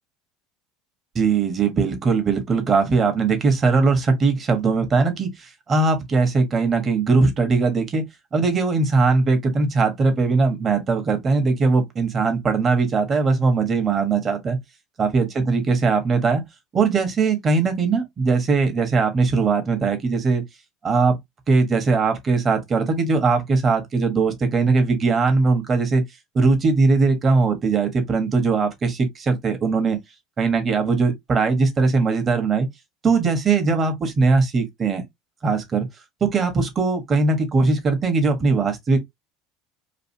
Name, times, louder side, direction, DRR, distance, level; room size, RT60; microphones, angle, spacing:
voice 1, 1.1-8.0 8.3-14.6 15.0-16.4 16.7-20.4 20.8-21.2 21.5-26.0 26.3-30.0 30.4-32.7 33.0-35.0 35.4-35.9 36.2-39.0, right 4 dB, 35° right, 1.3 m, -20 dB
3.2 x 2.4 x 2.8 m
supercardioid pair, 90°, 0 cm